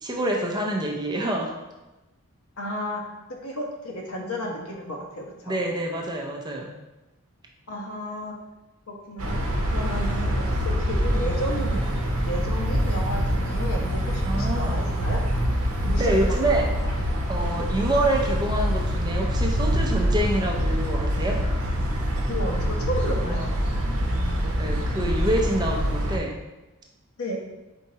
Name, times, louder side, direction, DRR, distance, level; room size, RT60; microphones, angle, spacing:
voice 1, 0.0-1.5 5.5-6.7 14.3-14.8 16.0-16.8 17.3-21.4 24.4-26.3, right 1 dB, 20° right, 0 dB, 0.5 m, -26 dB
voice 2, 2.6-3.0 3.4-5.6 7.7-8.3 8.9-9.4 9.7-11.8 12.2-15.2 15.8-16.9 22.3-23.6 27.2-27.4, equal, 75° left, 0 dB, 0.9 m, -32 dB
sound 1, 9.2-26.2, equal, 70° right, 0.7 m, -25 dB
4.5 x 4.2 x 2.8 m, 1.0 s
head